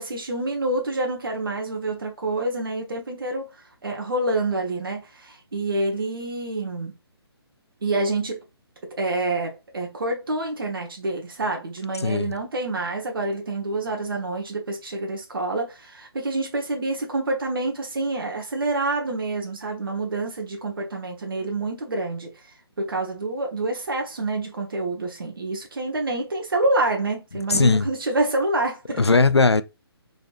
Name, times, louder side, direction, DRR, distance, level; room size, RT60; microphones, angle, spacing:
voice 1, 0.0-6.9 7.8-8.4 9.0-29.0, right 2 dB, 60° right, 1.0 m, -27 dB
voice 2, 12.0-12.3 27.5-27.9 29.0-29.6, left 3 dB, 85° left, 0.4 m, -18 dB
3.9 x 3.5 x 2.4 m
figure-of-eight pair, 140°, 14 cm